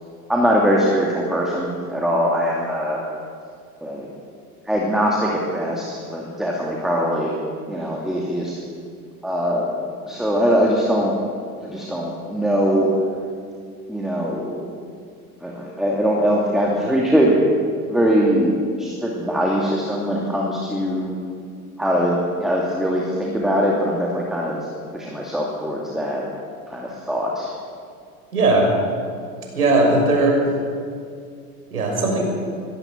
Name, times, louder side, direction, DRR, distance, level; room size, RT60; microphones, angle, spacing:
voice 1, 0.3-3.0 3.8-4.1 4.7-7.3 7.7-8.6 9.2-9.7 10.1-11.2 11.6-12.9 13.9-14.6 15.4-17.3 17.9-21.2 21.8-24.6 24.9-26.2 26.7-27.5, equal, ahead, -2 dB, 2.7 m, -21 dB
voice 2, 28.3-28.7 29.5-30.4 31.7-32.2, right 2 dB, 75° right, 0 dB, 6.4 m, -18 dB
22.0 x 16.5 x 7.4 m, 2.2 s
figure-of-eight pair, 85°, 45 cm